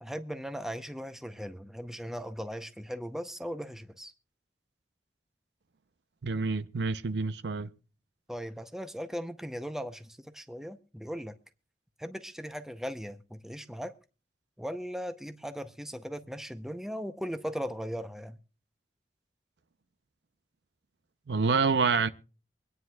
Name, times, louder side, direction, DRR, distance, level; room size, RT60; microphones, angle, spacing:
voice 1, 0.0-4.1 8.3-11.3 12.0-13.9 14.6-18.4, equal, 5° right, 0.6 m, -38 dB
voice 2, 6.2-7.7 21.3-22.1, right 4 dB, 75° right, 0.6 m, -27 dB
24.5 x 9.5 x 2.3 m
head